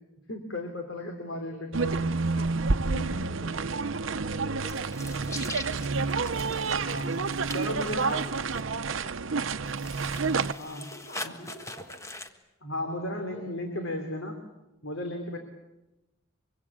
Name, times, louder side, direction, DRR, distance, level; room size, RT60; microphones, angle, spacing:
voice 1, 0.3-2.1 2.4-2.5 2.9-3.4 6.6-7.3 7.5-8.3 10.6-10.8 11.2-11.3 12.6-14.3 14.8-15.4, left 1 dB, 75° left, 4 dB, 3.3 m, -35 dB
voice 2, 1.2-2.7 3.0-6.2 7.5-8.5 8.8-9.9 10.4-12.2 12.8-13.8, equal, 35° left, 0 dB, 6.4 m, -50 dB
sound 1, 1.7-10.5, right 4 dB, 70° right, 0.8 m, -29 dB
sound 2, 4.6-8.6 9.6-12.3, left 2 dB, 15° left, 1.5 m, -42 dB
24.5 x 24.5 x 8.6 m, 0.96 s
head